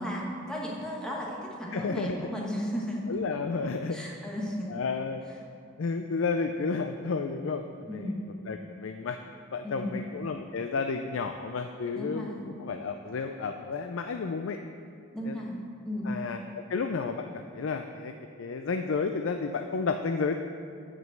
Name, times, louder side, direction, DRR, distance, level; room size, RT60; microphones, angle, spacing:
voice 1, 0.0-3.0 3.9-4.7 7.9-8.2 9.6-10.0 11.9-12.5 15.1-15.6 15.8-16.1, equal, 5° left, -4 dB, 1.4 m, -34 dB
voice 2, 1.7-2.3 3.1-4.0 4.7-5.2 5.8-8.1 8.4-9.2 9.5-14.6 15.2-15.4 16.1-18.1 18.4-20.4, left 4 dB, 75° left, 6 dB, 0.4 m, -32 dB
9.4 x 5.2 x 7.8 m, 2.4 s
head